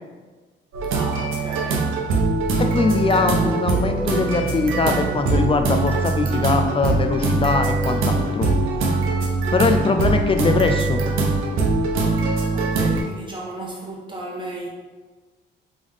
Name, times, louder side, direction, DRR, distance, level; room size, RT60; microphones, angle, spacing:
sound 1, 0.7-13.0, right 3 dB, 90° right, 0.8 m, -22 dB
voice 1, 0.9-2.0 12.5-14.7, right 1 dB, 25° right, -2 dB, 1.1 m, -34 dB
voice 2, 2.6-8.5 9.5-11.0, left 4 dB, 25° left, 6 dB, 0.3 m, -22 dB
3.6 x 3.3 x 3.5 m, 1.3 s
cardioid pair, 90°, 20 cm